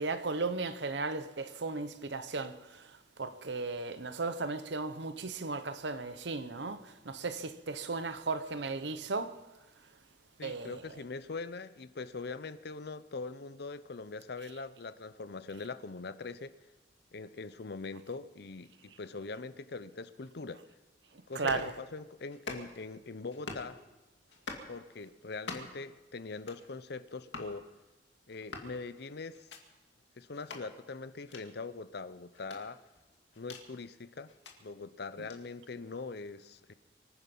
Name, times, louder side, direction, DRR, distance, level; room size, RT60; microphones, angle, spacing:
voice 1, 0.0-2.8 3.2-9.4 10.4-10.8 21.3-21.7, right 3 dB, 70° right, 0.9 m, -35 dB
voice 2, 10.4-16.5 17.1-20.6 21.3-23.8 24.7-27.7 28.3-29.5 30.2-32.8 33.4-34.3 34.6-36.7, left 4 dB, 60° left, 0.7 m, -42 dB
sound 1, 21.3-21.7 22.3-22.9 23.3-23.7 24.3-24.7 25.3-25.8 26.3-26.7 27.3-27.5 28.3-28.7 29.3-29.6 30.3-30.6 31.3-31.4 32.3-33.7 34.3-34.5 35.3-35.4, left 3 dB, 75° left, 2.2 m, -44 dB
24.5 x 10.0 x 5.5 m
head